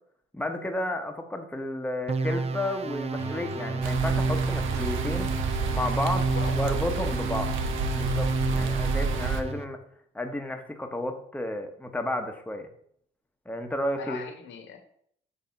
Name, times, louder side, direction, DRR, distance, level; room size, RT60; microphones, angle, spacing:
voice 1, 0.3-5.3 5.7-7.5 7.9-9.8 10.1-12.7 13.5-14.2, left 1 dB, 5° left, 5 dB, 0.9 m, -32 dB
sound 1, 2.1-9.6, right 3 dB, 30° right, 0.5 m, -30 dB
sound 2, 3.2-9.6, equal, 15° right, 1.1 m, -41 dB
sound 3, 3.8-9.4, right 4 dB, 80° right, 0.7 m, -30 dB
voice 2, 6.3-6.7 8.5-8.7 14.0-14.8, left 6 dB, 70° left, 5 dB, 1.2 m, -40 dB
6.9 x 2.8 x 5.1 m, 0.67 s
cardioid pair, 90°, 20 cm